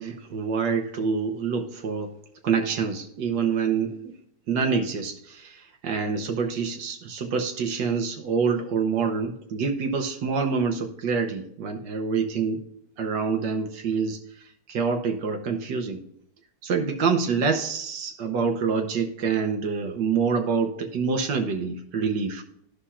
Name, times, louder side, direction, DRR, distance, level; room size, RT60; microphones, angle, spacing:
voice 1, 0.0-2.1 2.4-4.1 4.5-12.6 13.0-14.2 14.7-16.0 16.6-22.4, right 5 dB, 90° right, 3 dB, 1.7 m, -26 dB
13.0 x 5.6 x 2.4 m, 0.73 s
omnidirectional pair, 1.8 m